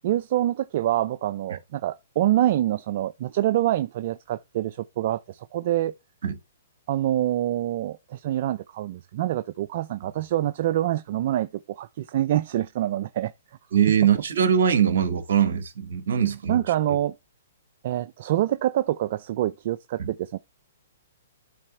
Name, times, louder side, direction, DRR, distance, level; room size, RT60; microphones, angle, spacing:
voice 1, 0.0-5.9 6.9-13.3 16.5-17.1 17.8-20.4, right 13 dB, 50° right, 0.5 m, -26 dB
voice 2, 13.7-16.6 20.0-20.1, right 8 dB, 65° right, 2.1 m, -22 dB
12.5 x 4.2 x 3.3 m
hypercardioid pair, 140°, 0 cm